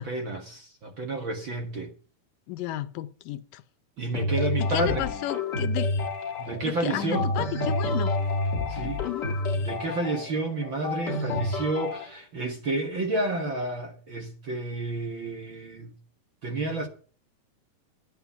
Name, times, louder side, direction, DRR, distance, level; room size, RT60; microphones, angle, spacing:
voice 1, 0.0-1.9 4.0-5.1 6.4-7.3 8.7-9.1 9.6-15.9 16.4-16.9, right 2 dB, 45° right, 1.7 m, -30 dB
voice 2, 2.5-3.6 4.6-5.9 6.6-8.1 9.0-9.4, left 15 dB, 80° left, 2.4 m, -33 dB
sound 1, 4.1-12.1, left 2 dB, 40° left, 1.8 m, -29 dB
14.0 x 10.5 x 5.8 m
omnidirectional pair, 4.0 m